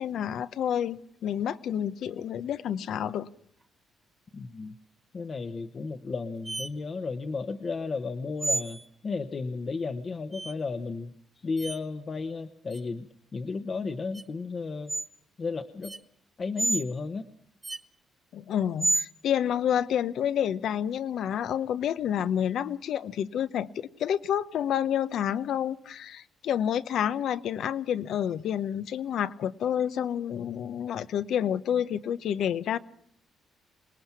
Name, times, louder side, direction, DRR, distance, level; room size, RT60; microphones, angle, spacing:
voice 1, 0.0-3.3 18.3-32.8, left 9 dB, 70° left, 0.8 m, -29 dB
voice 2, 4.3-4.7 5.1-11.1 11.4-13.1 13.3-14.9 15.4-16.0 16.4-17.2, left 4 dB, 40° left, 1.0 m, -33 dB
sound 1, 6.4-6.7 8.4-8.9 10.3-10.5 11.6-11.8 12.7-12.8 14.1-14.2 14.9-15.1 15.8-16.0 16.6-16.8 17.6-17.8 18.8-19.1, right 3 dB, 20° right, 0.9 m, -29 dB
26.5 x 19.0 x 5.9 m
cardioid pair, 90°, 0 cm